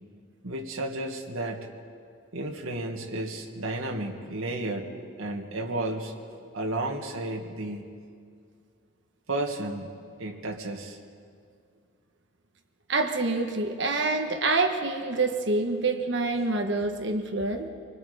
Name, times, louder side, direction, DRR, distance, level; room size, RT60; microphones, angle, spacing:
voice 1, 0.4-1.7 2.3-4.9 5.2-7.9 9.3-9.9 10.2-11.0, right 2 dB, 85° right, 1 dB, 2.0 m, -33 dB
voice 2, 12.9-17.7, right 3 dB, 60° right, 5 dB, 1.5 m, -26 dB
26.0 x 21.0 x 5.1 m, 2.2 s
head